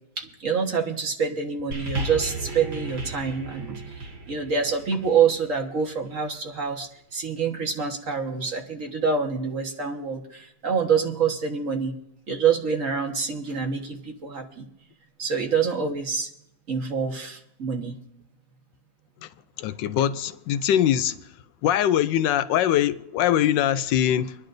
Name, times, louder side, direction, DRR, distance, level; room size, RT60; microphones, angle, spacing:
voice 1, 0.2-12.0 12.3-14.7 15.2-16.3 16.7-18.0, right 6 dB, 50° right, 1.6 m, -26 dB
sound 1, 1.7-6.3 7.1-7.2, right 2 dB, 65° right, 2.3 m, -35 dB
voice 2, 19.6-21.2 21.6-24.4, left 11 dB, 85° left, 1.3 m, -22 dB
26.0 x 10.5 x 2.6 m
omnidirectional pair, 1.9 m